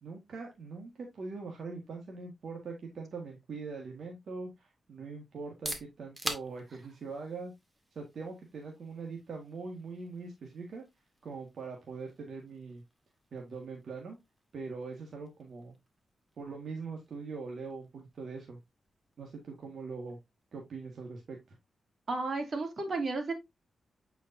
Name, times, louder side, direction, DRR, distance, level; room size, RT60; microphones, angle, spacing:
voice 1, 0.0-7.5 7.9-10.8 11.2-12.8 13.3-14.2 14.5-15.7 16.4-18.6 19.2-20.2 20.5-21.6, right 4 dB, 70° right, 1 dB, 1.6 m, -42 dB
sound 1, 5.4-21.0, right 1 dB, 15° right, 2.0 m, -48 dB
voice 2, 22.1-23.3, right 3 dB, 50° right, 4 dB, 2.6 m, -33 dB
8.1 x 5.0 x 2.6 m, 0.19 s
cardioid pair, 70°, 0 cm